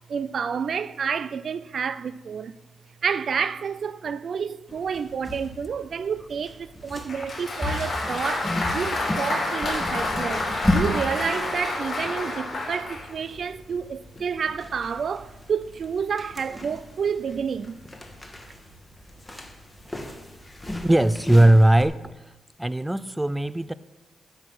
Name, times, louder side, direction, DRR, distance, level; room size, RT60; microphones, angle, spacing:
voice 1, 0.0-2.6 3.0-17.8, right 6 dB, 65° right, 0.5 m, -29 dB
sound 1, 4.7-21.8, left 1 dB, 15° left, 2.2 m, -35 dB
Applause, 7.1-13.1, left 2 dB, 45° left, 5.0 m, -29 dB
voice 2, 20.8-22.3 22.6-23.7, right 1 dB, 10° right, 0.6 m, -19 dB
12.0 x 6.7 x 7.8 m
cardioid pair, 60°, 0 cm